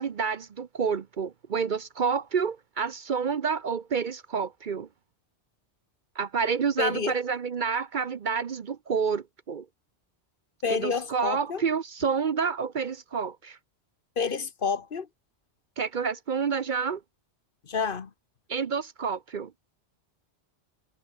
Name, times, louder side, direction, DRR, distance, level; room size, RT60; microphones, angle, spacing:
voice 1, 0.0-4.9 6.2-9.6 10.7-13.6 15.8-17.0 18.5-19.5, right 6 dB, 50° right, 0.8 m, -29 dB
voice 2, 6.8-7.1 10.6-11.6 14.2-15.1 17.7-18.1, left 5 dB, 55° left, 1.2 m, -29 dB
omnidirectional pair, 1.1 m